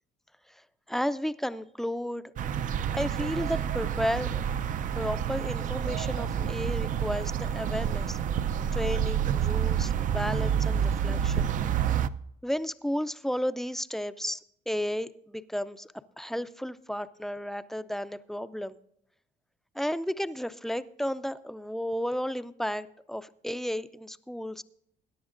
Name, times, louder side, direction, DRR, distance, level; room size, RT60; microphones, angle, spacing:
voice 1, 0.5-2.3 2.9-4.4 4.9-8.2 8.7-11.5 12.4-14.4 14.7-18.8 19.7-24.6, equal, ahead, 13 dB, 0.5 m, -33 dB
sound 1, 2.4-12.1, right 8 dB, 50° right, 0.5 m, -28 dB
21.5 x 10.0 x 2.5 m, 0.74 s
cardioid pair, 110°, 17 cm